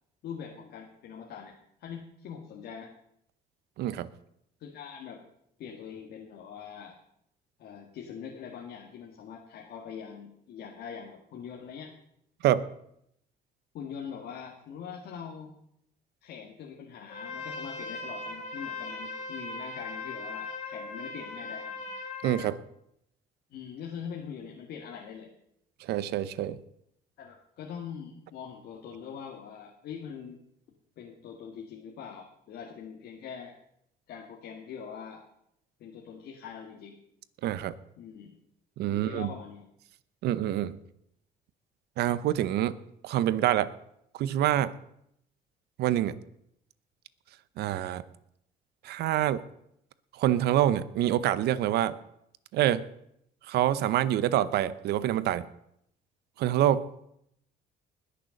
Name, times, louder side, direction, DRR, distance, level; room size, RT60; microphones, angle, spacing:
voice 1, 0.2-2.9 4.6-5.2 5.6-7.0 7.6-11.9 13.7-15.5 16.2-21.9 23.5-25.3 27.2-30.4 31.0-33.5 34.1-35.2 35.8-37.0 38.0-38.3 38.9-39.7, left 7 dB, 70° left, 1 dB, 1.9 m, -43 dB
voice 2, 3.8-4.1 12.4-12.7 22.2-22.6 25.8-26.6 37.4-37.7 38.8-39.3 40.2-40.8 42.0-42.8 43.0-43.7 44.2-44.7 45.8-46.2 47.6-48.0 48.8-49.4 50.2-52.0 52.5-52.8 53.5-55.5 56.4-56.9, right 12 dB, 75° right, 16 dB, 0.8 m, -26 dB
Trumpet, 17.1-22.5, left 3 dB, 45° left, 3.1 m, -39 dB
20.0 x 6.8 x 6.5 m, 0.76 s
cardioid pair, 110°, 17 cm